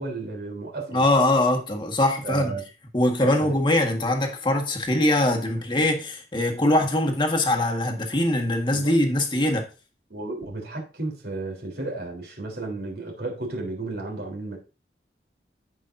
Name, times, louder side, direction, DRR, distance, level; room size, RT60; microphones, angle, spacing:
voice 1, 0.0-1.0 2.2-2.6 3.2-3.6 8.7-8.9 10.1-14.6, right 3 dB, 60° right, 3.6 m, -33 dB
voice 2, 0.9-2.5 2.9-9.7, left 1 dB, 25° left, 1.6 m, -22 dB
14.5 x 5.6 x 2.7 m
head